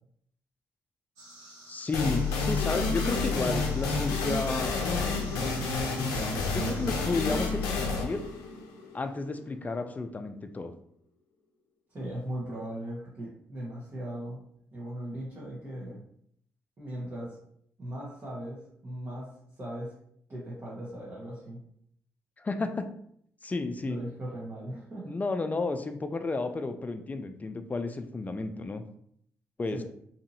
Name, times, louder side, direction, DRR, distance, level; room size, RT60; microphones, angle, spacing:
sound 1, 1.2-7.0, right 1 dB, 80° right, 0.7 m, -51 dB
voice 1, 1.7-5.1 6.1-8.2 8.9-10.7 22.4-22.9 23.4-24.0 25.1-28.8 29.6-29.8, left 3 dB, 25° left, 7 dB, 0.4 m, -32 dB
sound 2, 1.9-9.4, left 3 dB, 85° left, 0.5 m, -29 dB
voice 2, 11.9-14.4 14.7-16.0 16.8-17.4 17.8-19.3 19.6-19.9 20.3-21.6 23.8-25.1 29.7-29.8, right 1 dB, 40° right, -7 dB, 1.1 m, -38 dB
2.8 x 2.5 x 2.7 m, 0.69 s
hypercardioid pair, 45°, 6 cm